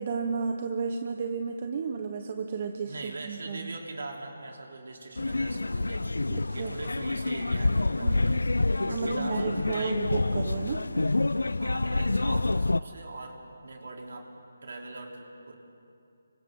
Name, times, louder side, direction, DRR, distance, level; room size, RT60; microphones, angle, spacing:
voice 1, 0.0-3.8 6.3-6.7 8.0-8.4 8.8-10.8, right 5 dB, 40° right, 5 dB, 1.2 m, -33 dB
voice 2, 2.9-10.0 11.4-14.3 14.6-15.5, right 2 dB, 65° right, 0 dB, 3.7 m, -41 dB
sound 1, 5.2-12.8, left 2 dB, 85° left, 0.4 m, -27 dB
29.5 x 25.0 x 3.9 m, 2.6 s
figure-of-eight pair, 155°, 0 cm